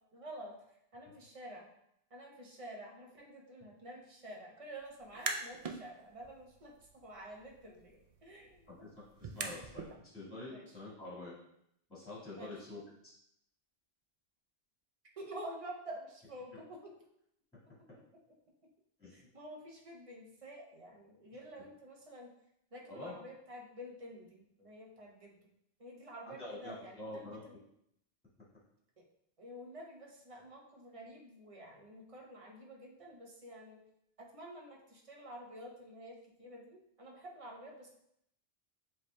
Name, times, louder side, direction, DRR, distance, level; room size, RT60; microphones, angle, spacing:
voice 1, 0.1-1.7 2.1-8.9 10.5-10.8 12.3-12.5 15.2-16.9 19.1-22.3 22.7-25.5 25.8-27.6 29.0-29.1 29.4-33.8 34.2-37.9, right 1 dB, 35° right, 0 dB, 0.8 m, -49 dB
sound 1, 5.0-5.8 6.2-9.9, right 4 dB, 55° right, 0.4 m, -44 dB
voice 2, 8.7-11.4 11.9-13.1 17.9-18.0 19.0-19.3 22.9-23.1 26.3-27.4, left 2 dB, 5° left, -9 dB, 1.8 m, -47 dB
7.5 x 3.2 x 2.2 m, 0.75 s
omnidirectional pair, 1.1 m